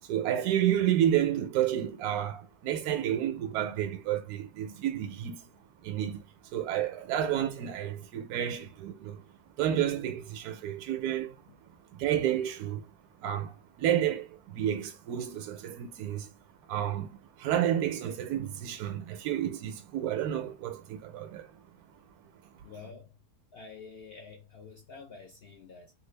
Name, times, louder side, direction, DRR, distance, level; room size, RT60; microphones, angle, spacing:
voice 1, 0.0-5.5 5.8-6.3 6.5-9.2 9.6-11.4 11.9-12.9 13.2-16.3 16.7-21.5, right 11 dB, 80° right, 1.1 m, -30 dB
voice 2, 22.6-23.1 23.5-25.9, left 5 dB, 60° left, 0.6 m, -48 dB
3.1 x 2.3 x 3.2 m
omnidirectional pair, 1.6 m